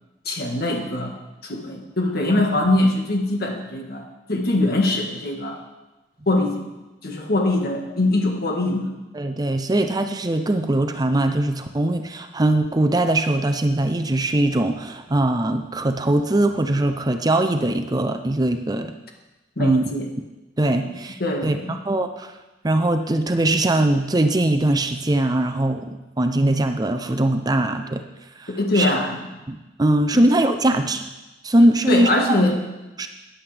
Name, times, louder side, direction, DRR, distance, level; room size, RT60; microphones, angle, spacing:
voice 1, 0.3-1.2 1.4-5.6 6.3-6.6 7.0-8.9 19.6-20.1 20.8-20.9 21.2-21.8 28.5-29.3 30.1-30.2 31.9-32.6, left 2 dB, 60° left, 2 dB, 1.7 m, -22 dB
voice 2, 9.1-18.9 19.6-19.9 20.6-22.3 22.6-28.0 28.4-28.5 28.7-28.9 29.5-31.1 31.4-32.5 33.0-33.1, right 1 dB, 20° right, 7 dB, 0.6 m, -21 dB
13.0 x 10.0 x 3.4 m, 1.1 s
head